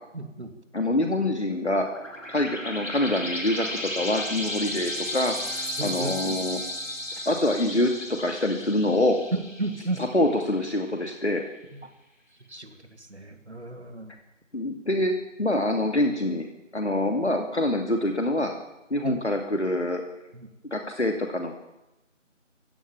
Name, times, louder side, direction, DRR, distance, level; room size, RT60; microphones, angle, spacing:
voice 1, 0.1-0.5 5.8-6.4 9.3-10.0 12.5-12.8 13.1-14.1 19.0-19.2 20.3-20.5, right 2 dB, 60° right, 7 dB, 3.1 m, -33 dB
voice 2, 0.7-1.9 2.3-6.6 7.3-9.2 10.0-11.4 14.5-15.1 15.4-16.5 16.7-18.5 18.9-20.0 20.7-21.5, left 1 dB, 60° left, 3 dB, 2.6 m, -25 dB
sound 1, 1.6-10.8, left 1 dB, 80° left, 5.6 m, -34 dB
27.0 x 16.0 x 7.4 m, 0.99 s
figure-of-eight pair, 170°, 38 cm